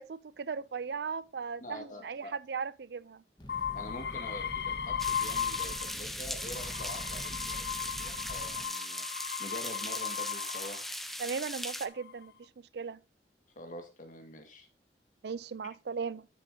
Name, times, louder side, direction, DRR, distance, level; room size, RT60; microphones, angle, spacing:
voice 1, 0.0-3.2 11.2-13.0 15.2-16.3, right 5 dB, 65° right, 0.4 m, -37 dB
voice 2, 1.6-2.3 3.7-9.1 9.4-10.8 13.6-14.7, equal, 45° left, 1.9 m, -45 dB
Fire, 3.4-8.7, left 1 dB, 25° left, 1.4 m, -46 dB
sound 1, 3.5-6.0 6.4-10.9 11.7-12.2, left 8 dB, 60° left, 0.7 m, -37 dB
sound 2, 5.0-11.9, equal, ahead, 0.6 m, -39 dB
11.5 x 7.1 x 2.8 m
head